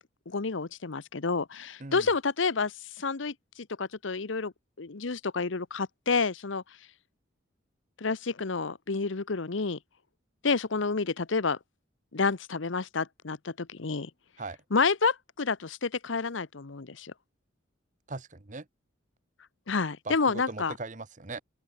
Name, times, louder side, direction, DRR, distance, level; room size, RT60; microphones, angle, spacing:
voice 1, 0.3-4.5 4.8-6.6 8.0-9.8 10.4-11.6 12.1-14.1 14.7-17.1 19.7-20.7, left 4 dB, 75° left, 0.9 m, -29 dB
voice 2, 18.1-18.7 20.0-21.4, right 3 dB, 40° right, 1.2 m, -39 dB
open air
head